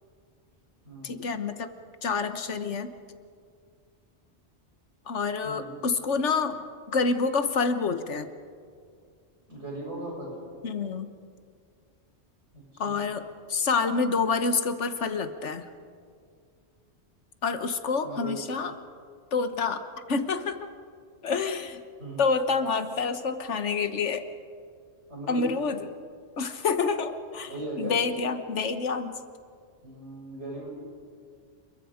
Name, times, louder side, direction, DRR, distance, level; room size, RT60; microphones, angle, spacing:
voice 1, 1.0-1.7 2.0-2.9 5.1-8.3 10.6-11.1 12.8-15.7 17.4-18.7 19.3-20.7 21.2-21.8 22.2-24.3 25.3-25.9 26.4-27.5 27.8-29.1, left 4 dB, 85° left, 9 dB, 1.5 m, -28 dB
voice 2, 9.5-10.4 12.5-13.0 18.0-18.4 22.0-22.2 25.1-25.5 27.5-28.0 29.8-30.7, right 2 dB, 75° right, -3 dB, 7.4 m, -38 dB
28.0 x 23.0 x 5.1 m, 2.2 s
omnidirectional pair, 1.2 m